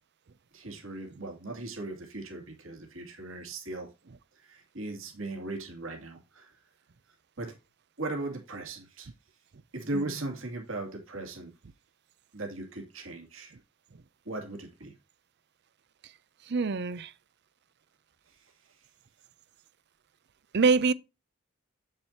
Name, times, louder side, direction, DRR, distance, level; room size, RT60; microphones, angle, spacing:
voice 1, 0.5-3.9 4.4-6.5 7.4-7.5 8.0-9.1 9.7-11.5 12.3-13.5 14.2-14.9 18.4-18.5, right 2 dB, 70° right, 2.6 m, -38 dB
voice 2, 16.5-17.1 20.5-20.9, right 4 dB, 55° right, 0.6 m, -24 dB
8.1 x 7.4 x 2.8 m
head